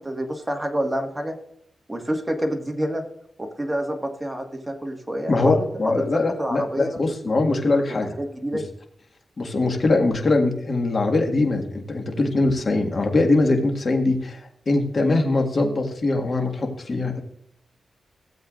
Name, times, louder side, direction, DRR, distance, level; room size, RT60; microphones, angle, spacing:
voice 1, 0.0-1.3 1.9-3.0 3.4-7.0 7.9-8.6, right 1 dB, 15° right, 3 dB, 1.7 m, -28 dB
voice 2, 5.3-8.1 9.4-17.2, left 2 dB, 45° left, 3 dB, 1.7 m, -22 dB
16.5 x 7.8 x 2.5 m, 0.69 s
wide cardioid pair, 100°, 0 cm